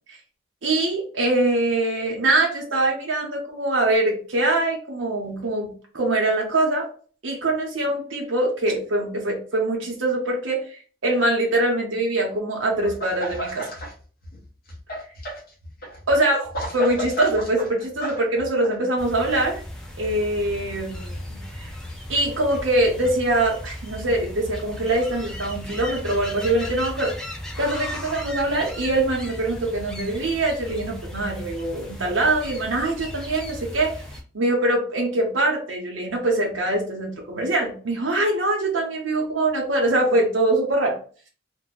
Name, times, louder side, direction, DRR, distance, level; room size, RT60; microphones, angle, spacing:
voice 1, 0.6-6.9 7.2-10.6 11.0-13.7 16.1-16.5 16.7-19.6 20.0-21.4 22.1-27.1 27.6-33.9 34.3-41.0, right 2 dB, 70° right, 0 dB, 0.8 m, -23 dB
sound 1, 12.8-13.9 14.2-18.8, right 1 dB, 50° left, 0.8 m, -33 dB
sound 2, 19.0-34.2, left 1 dB, 5° left, 0.5 m, -36 dB
2.6 x 2.2 x 3.2 m, 0.40 s
head